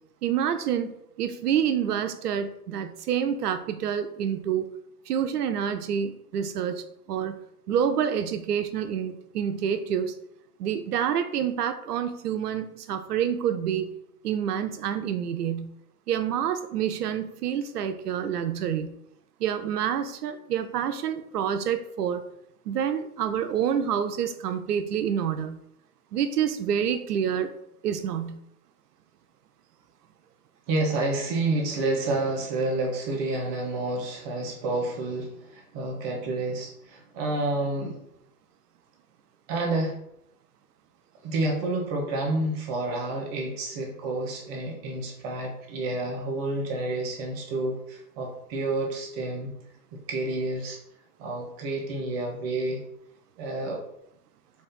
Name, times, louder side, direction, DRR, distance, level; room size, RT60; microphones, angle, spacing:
voice 1, 0.2-0.9 1.2-4.7 5.1-7.3 7.7-10.1 10.6-13.9 14.2-15.7 16.1-18.9 19.4-22.2 22.7-25.6 26.1-27.5 27.8-28.4, right 8 dB, 75° right, 9 dB, 0.7 m, -27 dB
voice 2, 30.7-38.0 39.5-39.9 41.2-49.5 49.9-50.8 51.2-52.8 53.4-53.8, right 2 dB, 25° right, 0 dB, 0.8 m, -29 dB
4.1 x 2.5 x 3.6 m, 0.77 s
hypercardioid pair, 145°, 47 cm